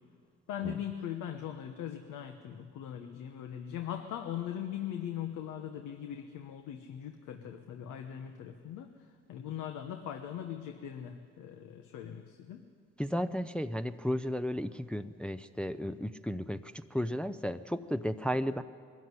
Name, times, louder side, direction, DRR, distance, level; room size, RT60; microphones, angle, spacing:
voice 1, 0.5-8.9 9.3-12.7, left 10 dB, 90° left, 5 dB, 1.1 m, -40 dB
voice 2, 13.0-18.6, equal, 5° left, 9 dB, 0.5 m, -34 dB
21.5 x 13.5 x 9.7 m, 2.1 s
cardioid pair, 90°, 30 cm